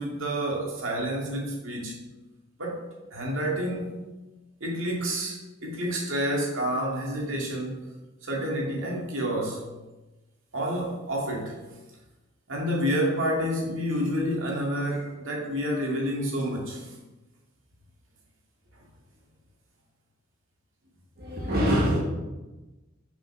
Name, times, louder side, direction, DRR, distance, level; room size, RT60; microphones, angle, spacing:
voice 1, 0.0-1.9 2.6-4.1 4.6-7.8 8.2-9.7 10.5-11.6 12.5-16.9, equal, 80° right, -2 dB, 2.3 m, -29 dB
voice 2, 21.2-22.0, equal, 50° right, -4 dB, 2.0 m, -24 dB
6.6 x 6.6 x 6.0 m, 1.1 s
head